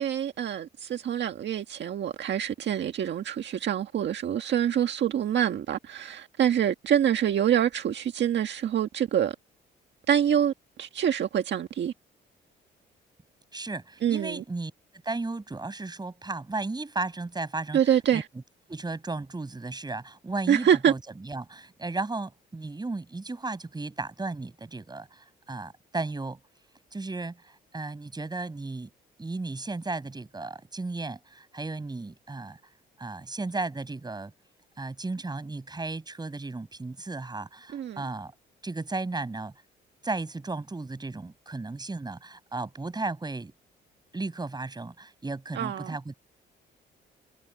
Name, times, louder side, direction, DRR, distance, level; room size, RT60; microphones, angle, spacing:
voice 1, 0.0-9.3 10.1-10.5 10.8-11.9 14.0-14.4 17.7-18.3 20.5-20.9 37.7-38.0 45.5-45.9, right 9 dB, 65° right, 1.6 m, -26 dB
voice 2, 13.5-14.7 15.0-17.8 18.1-18.2 18.7-26.4 26.9-28.9 29.2-32.6 33.0-34.3 34.8-38.3 38.6-39.5 40.0-43.5 44.1-46.1, right 3 dB, 20° right, 6.1 m, -34 dB
cardioid pair, 90°, 20 cm